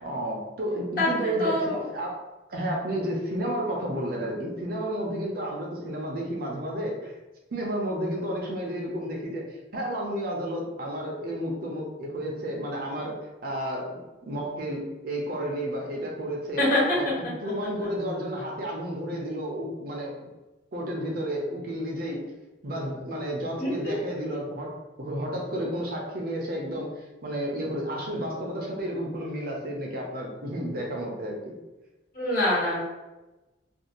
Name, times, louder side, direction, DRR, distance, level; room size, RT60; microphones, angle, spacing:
voice 1, 0.0-2.2 2.5-7.1 7.5-13.2 13.4-16.6 17.0-20.1 20.7-22.2 22.6-31.5, equal, 50° right, -1 dB, 0.6 m, -32 dB
voice 2, 1.0-1.8 16.6-16.8 23.6-23.9 32.1-32.8, left 1 dB, 55° left, -7 dB, 1.2 m, -25 dB
2.5 x 2.3 x 2.8 m, 1.1 s
head